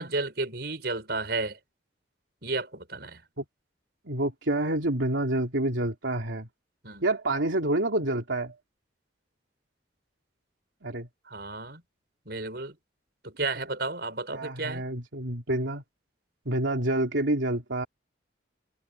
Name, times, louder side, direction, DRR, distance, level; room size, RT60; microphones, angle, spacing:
voice 1, 0.0-1.6 2.4-3.2 6.8-7.0 11.3-11.8 12.3-12.8 13.2-14.9, right 3 dB, 55° right, 6.0 m, -32 dB
voice 2, 4.0-6.5 7.0-8.6 10.8-11.1 14.3-15.8 16.4-17.9, right 1 dB, 80° right, 3.1 m, -28 dB
head